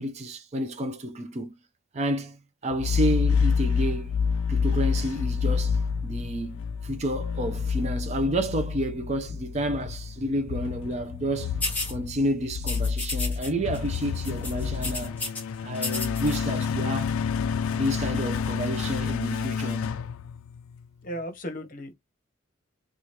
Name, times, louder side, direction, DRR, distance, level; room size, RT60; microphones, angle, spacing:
voice 1, 0.0-1.5 1.9-4.1 4.5-5.8 6.0-11.5 11.9-15.2 15.6-17.1 17.7-19.9, right 1 dB, 30° right, 0.4 m, -30 dB
sound 1, 2.7-20.9, left 6 dB, 80° left, 0.3 m, -28 dB
sound 2, 11.6-11.9 12.6-13.5 13.7-14.0 14.2-15.4 15.8-16.4, left 2 dB, 10° left, 0.7 m, -32 dB
voice 2, 21.0-21.9, equal, 40° left, 0.8 m, -35 dB
2.8 x 2.3 x 3.1 m
head